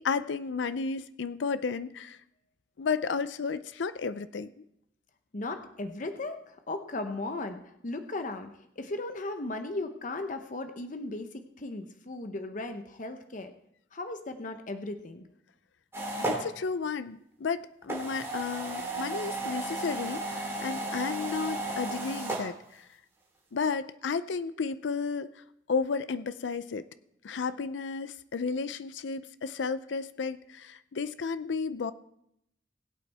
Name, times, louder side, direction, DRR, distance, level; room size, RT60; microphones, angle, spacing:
voice 1, 0.0-2.2 2.8-4.5 16.3-22.9 23.5-25.3 25.7-26.8 27.2-31.9, left 5 dB, 85° left, 14 dB, 0.5 m, -33 dB
voice 2, 5.3-8.5 8.8-13.5 13.9-15.2, left 2 dB, 45° left, 7 dB, 0.8 m, -36 dB
sound 1, 15.9-16.4 17.8-22.4, right 2 dB, 15° right, 3.4 m, -34 dB
20.5 x 8.5 x 3.4 m, 0.76 s
head